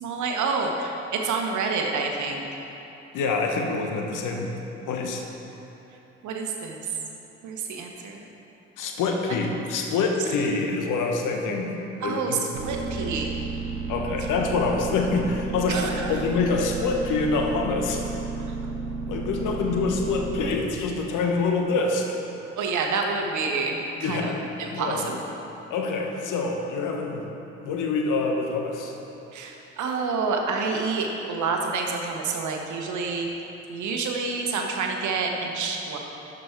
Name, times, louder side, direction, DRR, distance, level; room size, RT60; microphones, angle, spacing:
voice 1, 0.0-2.4 6.2-6.9 7.4-8.2 9.6-9.7 12.0-13.3 15.7-16.2 18.5-18.6 22.5-25.2 29.3-33.4 33.7-36.0, right 4 dB, 55° right, 2 dB, 1.2 m, -28 dB
voice 2, 3.1-4.6 4.9-5.2 8.8-12.4 12.7-13.2 13.9-18.2 19.1-22.2 24.0-24.4 24.7-25.1 25.7-27.2 27.6-28.9, left 4 dB, 60° left, 2 dB, 1.2 m, -26 dB
sound 1, 12.5-20.6, right 4 dB, 75° right, 1.0 m, -32 dB
12.0 x 5.2 x 4.6 m, 3.0 s
hypercardioid pair, 50°, 35 cm